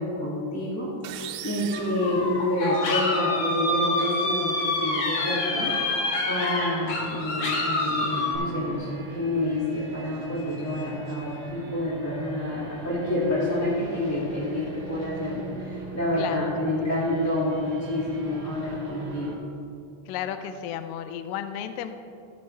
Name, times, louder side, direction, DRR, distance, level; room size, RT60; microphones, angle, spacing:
voice 1, 0.0-5.7 6.3-19.3, left 1 dB, 10° left, -8 dB, 1.2 m, -28 dB
sound 1, 1.0-3.0, right 11 dB, 80° right, 2.2 m, -40 dB
sound 2, 1.7-8.4, left 2 dB, 60° left, 2.9 m, -27 dB
sound 3, 7.5-19.4, right 2 dB, 55° right, 3.1 m, -41 dB
voice 2, 16.2-16.5 20.1-21.9, left 10 dB, 80° left, 10 dB, 2.2 m, -33 dB
16.0 x 8.4 x 3.3 m, 2.7 s
omnidirectional pair, 4.0 m